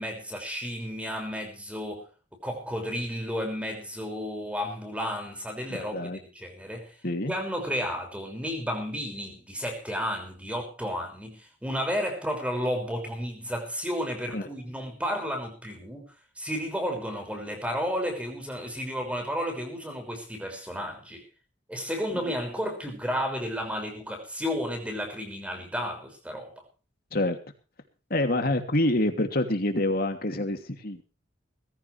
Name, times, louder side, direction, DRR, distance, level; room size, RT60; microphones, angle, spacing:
voice 1, 0.0-2.1 2.4-7.0 7.3-16.0 16.4-21.2 21.7-26.6, equal, 5° right, 6.0 m, -32 dB
voice 2, 5.7-6.2 7.0-7.3 14.3-14.5 27.1-27.4 28.1-31.0, left 1 dB, 55° left, 2.8 m, -27 dB
21.5 x 15.0 x 3.4 m
head